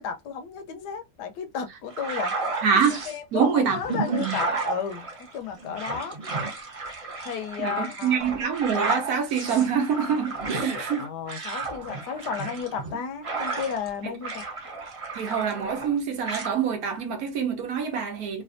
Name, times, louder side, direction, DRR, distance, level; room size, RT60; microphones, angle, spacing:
voice 1, 0.0-2.6 3.1-5.1 5.3-6.1 7.2-8.2 11.0-14.4, left 7 dB, 80° left, 1.2 m, -33 dB
sound 1, 1.9-3.2 3.7-13.9 14.2-16.0 16.2-16.5, right 3 dB, 35° right, 0.5 m, -32 dB
voice 2, 2.6-3.8 4.2-4.4 7.6-11.1 15.1-18.4, right 7 dB, 65° right, 1.2 m, -25 dB
3.3 x 2.5 x 2.4 m
omnidirectional pair, 1.8 m